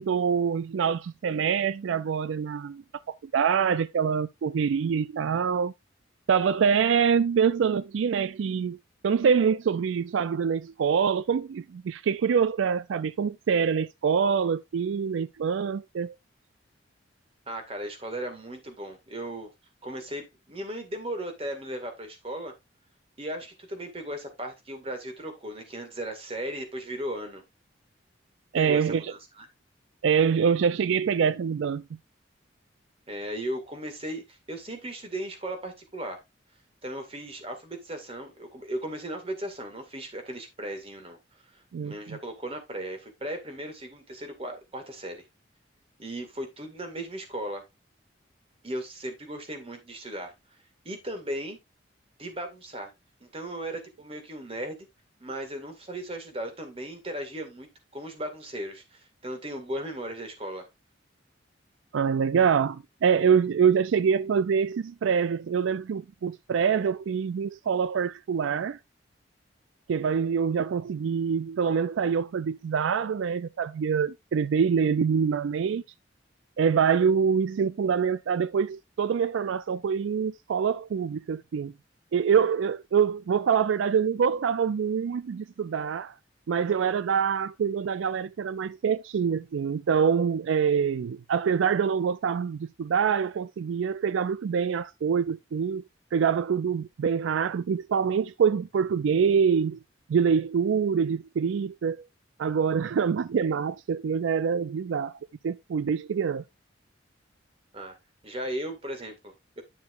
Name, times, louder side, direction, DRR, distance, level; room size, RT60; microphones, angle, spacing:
voice 1, 0.0-2.8 3.3-5.7 6.3-8.8 9.0-16.1 28.5-29.0 30.0-31.8 41.7-42.2 61.9-68.8 69.9-75.8 76.6-81.7 82.1-86.1 86.5-95.8 96.1-99.8 100.1-102.0 102.4-105.2 105.4-106.4, right 6 dB, 80° right, 0.4 m, -25 dB
voice 2, 17.5-19.5 19.8-22.5 23.2-27.4 28.6-29.5 33.1-36.2 36.8-41.2 41.5-45.2 46.0-47.6 48.6-50.3 50.9-51.6 52.2-52.9 53.2-54.8 55.2-60.7 107.7-108.0 108.2-109.6, right 1 dB, 30° right, 2.0 m, -36 dB
9.7 x 7.0 x 2.5 m
head